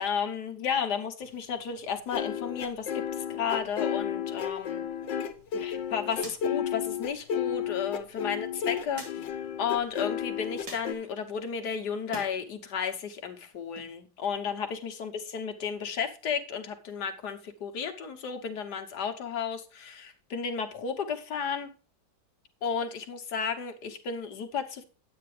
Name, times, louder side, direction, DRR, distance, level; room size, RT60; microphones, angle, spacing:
voice 1, 0.0-4.8 5.5-9.2 9.6-21.7 22.6-24.8, left 6 dB, 70° left, 1.6 m, -33 dB
sound 1, 2.1-10.9, left 9 dB, 90° left, 1.5 m, -32 dB
sound 2, 5.1-12.3 12.7-13.8, right 2 dB, 90° right, 3.4 m, -50 dB
10.0 x 8.6 x 3.2 m
omnidirectional pair, 1.9 m